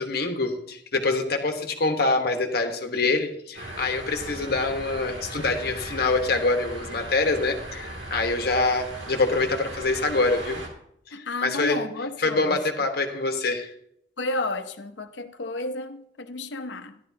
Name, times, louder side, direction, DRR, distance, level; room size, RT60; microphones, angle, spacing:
voice 1, 0.0-10.6 11.1-11.8 12.2-13.7, left 3 dB, 60° left, 1.3 m, -25 dB
sound 1, 3.5-10.7, right 1 dB, 85° right, 2.6 m, -38 dB
voice 2, 11.1-12.6 14.2-17.0, left 2 dB, 80° left, 0.8 m, -31 dB
12.5 x 11.5 x 2.8 m
head